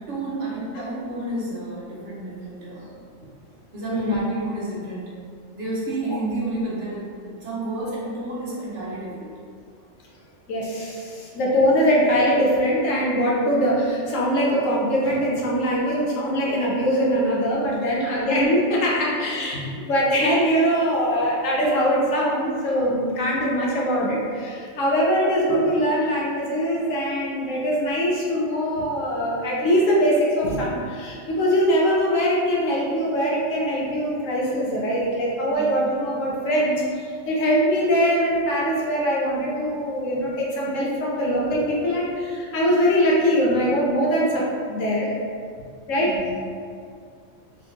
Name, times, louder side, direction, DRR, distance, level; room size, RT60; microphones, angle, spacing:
voice 1, 0.0-3.0 3.7-5.1 5.5-9.3 17.8-18.1 18.9-19.1 19.4-19.5 35.5-35.9 46.0-46.4, right 2 dB, 70° right, -7 dB, 1.4 m, -31 dB
voice 2, 3.9-4.2 10.5-45.1 45.9-46.1, equal, 80° left, -4 dB, 1.2 m, -22 dB
3.9 x 3.5 x 2.9 m, 2.2 s
omnidirectional pair, 1.3 m